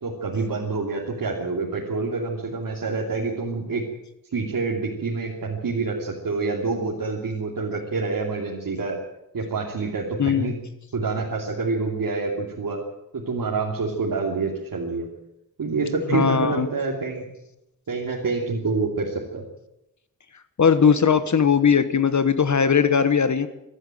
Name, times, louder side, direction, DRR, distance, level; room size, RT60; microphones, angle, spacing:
voice 1, 0.0-3.8 4.3-9.0 9.3-10.6 10.9-12.8 13.1-15.1 15.6-17.3 17.9-19.4, right 4 dB, 85° right, -2 dB, 3.0 m, -27 dB
voice 2, 10.2-10.5 16.1-16.7 20.6-23.5, left 6 dB, 60° left, 11 dB, 1.3 m, -19 dB
23.5 x 12.5 x 9.2 m, 0.89 s
wide cardioid pair, 130°, 33 cm